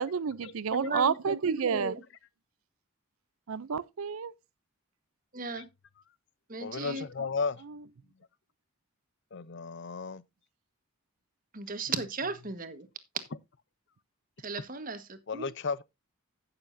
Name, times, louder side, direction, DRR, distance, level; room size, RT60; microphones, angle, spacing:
voice 1, 0.0-1.9 3.5-4.3 6.8-7.0, right 6 dB, 75° right, 0.5 m, -30 dB
voice 2, 0.7-2.0 5.3-5.7 6.5-7.1 11.5-12.9 14.4-15.5, right 3 dB, 40° right, 1.4 m, -36 dB
voice 3, 6.6-7.6 9.3-10.2 15.3-15.8, left 4 dB, 55° left, 0.6 m, -34 dB
16.0 x 7.0 x 2.6 m
head